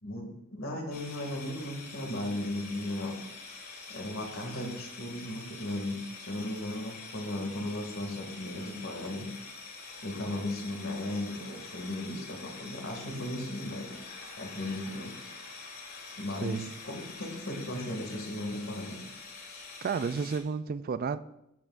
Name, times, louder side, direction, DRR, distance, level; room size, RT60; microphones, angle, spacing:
voice 1, 0.0-3.2 3.9-9.3 10.0-14.0 14.4-15.1 16.2-19.0, left 1 dB, 65° left, 2.3 m, -36 dB
sound 1, 0.9-20.4, left 4 dB, 50° left, 1.9 m, -46 dB
voice 2, 19.8-21.2, right 5 dB, 45° right, 0.3 m, -31 dB
13.5 x 8.5 x 2.5 m
head